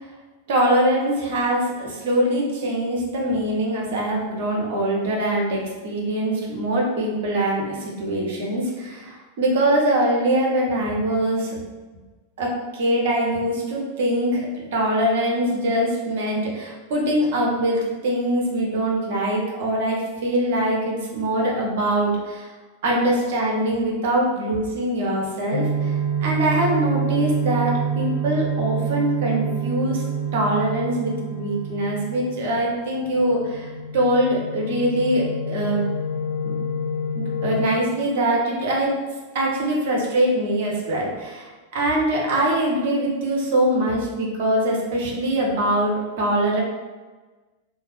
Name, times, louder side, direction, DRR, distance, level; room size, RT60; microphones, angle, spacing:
voice 1, 0.5-11.6 12.4-14.5 14.7-22.5 22.8-25.9 26.2-30.0 30.3-35.9 36.4-36.6 37.1-38.9 39.3-46.6, right 1 dB, 55° right, -2 dB, 0.7 m, -23 dB
sound 1, 25.5-32.7 32.9-37.7, right 3 dB, 80° left, 1.1 m, -27 dB
2.7 x 2.1 x 3.1 m, 1.3 s
figure-of-eight pair, 90°, 0 cm